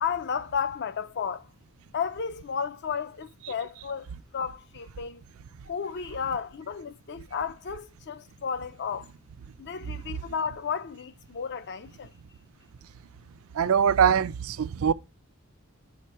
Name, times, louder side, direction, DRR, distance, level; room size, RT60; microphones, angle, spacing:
voice 1, 0.0-1.5 1.9-5.2 5.7-9.1 9.6-12.1, left 6 dB, 55° left, 0.5 m, -33 dB
voice 2, 13.5-14.9, right 7 dB, 70° right, 0.4 m, -23 dB
5.2 x 5.1 x 4.2 m
head